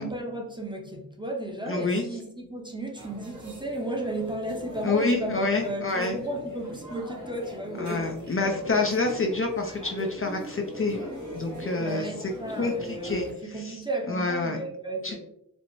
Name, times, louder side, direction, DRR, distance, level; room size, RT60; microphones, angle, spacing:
voice 1, 0.0-8.5 11.8-15.2, right 1 dB, 15° right, 1 dB, 0.7 m, -34 dB
voice 2, 1.7-2.0 4.8-6.2 7.8-11.1 11.3-12.3 12.6-13.8 14.1-14.6 15.0-15.2, left 3 dB, 40° left, 2 dB, 0.5 m, -27 dB
sound 1, 3.0-13.3, right 1 dB, 60° right, 1.2 m, -41 dB
4.5 x 2.0 x 2.6 m, 0.77 s
cardioid pair, 50°, 35 cm